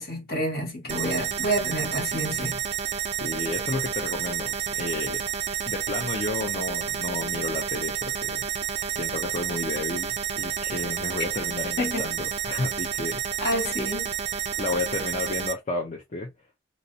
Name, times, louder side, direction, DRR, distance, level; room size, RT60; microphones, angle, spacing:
voice 1, 0.0-2.6 11.8-12.1 13.4-14.1, equal, 55° left, 1.4 m, -28 dB
sound 1, 0.9-15.5, right 9 dB, 35° right, 0.3 m, -30 dB
voice 2, 3.2-5.2 5.7-8.5 8.8-13.2 14.6-16.3, left 2 dB, 40° left, 0.5 m, -32 dB
2.5 x 2.0 x 2.6 m
head